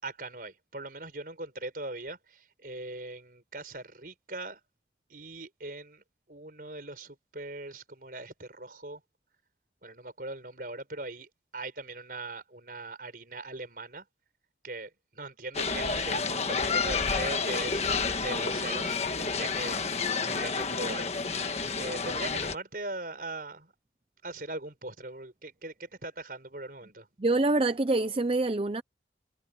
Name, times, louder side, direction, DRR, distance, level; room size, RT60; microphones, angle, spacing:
voice 1, 0.0-4.6 5.1-9.0 9.8-14.1 14.6-21.1 21.8-23.7 24.2-27.1, right 2 dB, 50° right, 5.4 m, -40 dB
sound 1, 15.5-22.5, left 4 dB, 35° left, 1.5 m, -30 dB
voice 2, 27.2-28.8, right 2 dB, 30° right, 0.5 m, -26 dB
head